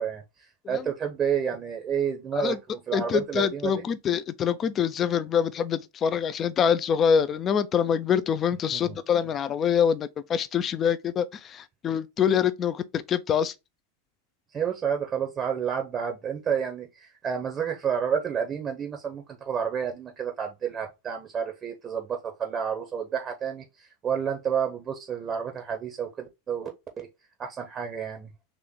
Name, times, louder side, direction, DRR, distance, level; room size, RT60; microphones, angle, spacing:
voice 1, 0.0-3.8 8.7-9.0 9.2-9.3 14.5-26.7 27.0-27.1 27.4-28.3, right 7 dB, 25° right, 0.7 m, -30 dB
voice 2, 2.9-12.8 13.1-13.5, left 8 dB, 25° left, 0.4 m, -25 dB
3.3 x 3.0 x 3.6 m
figure-of-eight pair, 90°, 0 cm